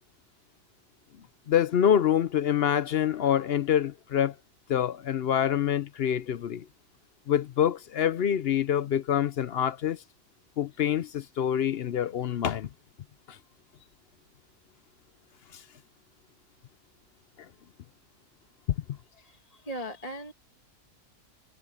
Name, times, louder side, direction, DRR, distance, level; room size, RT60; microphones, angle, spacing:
voice 1, 1.5-4.3 4.7-6.7 7.3-10.0 10.6-12.7 13.3-13.4 15.5-15.6, left 9 dB, 65° left, 0.6 m, -26 dB
voice 2, 19.2-20.3, equal, 25° left, 1.8 m, -39 dB
omnidirectional pair, 1.7 m